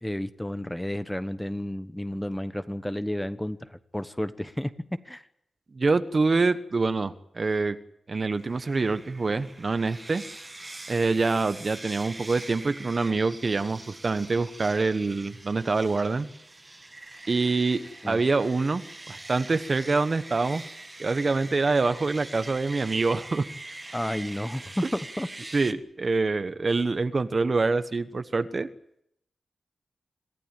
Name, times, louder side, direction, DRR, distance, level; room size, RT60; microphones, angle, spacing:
voice 1, 0.0-5.2 18.0-18.2 23.9-25.3 25.7-25.8, left 1 dB, 5° left, 11 dB, 1.1 m, -32 dB
voice 2, 5.7-7.8 8.1-10.2 10.9-16.3 17.3-18.8 19.1-20.6 21.0-23.5 25.5-28.7, right 3 dB, 40° right, 12 dB, 1.1 m, -25 dB
sound 1, 8.4-25.7, right 2 dB, 20° right, 1.4 m, -44 dB
27.0 x 15.0 x 9.0 m, 0.75 s
wide cardioid pair, 120°, 0 cm